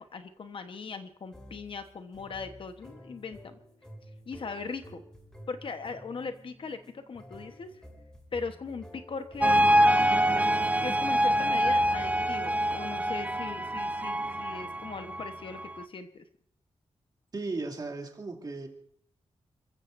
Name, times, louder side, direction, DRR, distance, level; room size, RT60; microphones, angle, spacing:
voice 1, 0.0-3.6 4.3-5.0 5.5-7.8 8.3-9.7 10.8-16.2, left 4 dB, 50° left, 8 dB, 1.1 m, -39 dB
sound 1, 1.3-12.5, equal, 5° left, 2.6 m, -51 dB
sound 2, 9.4-15.8, equal, 15° right, 0.6 m, -25 dB
voice 2, 17.3-18.7, right 3 dB, 35° right, 0 dB, 2.8 m, -36 dB
29.5 x 14.5 x 2.6 m, 0.66 s
wide cardioid pair, 155°, 11 cm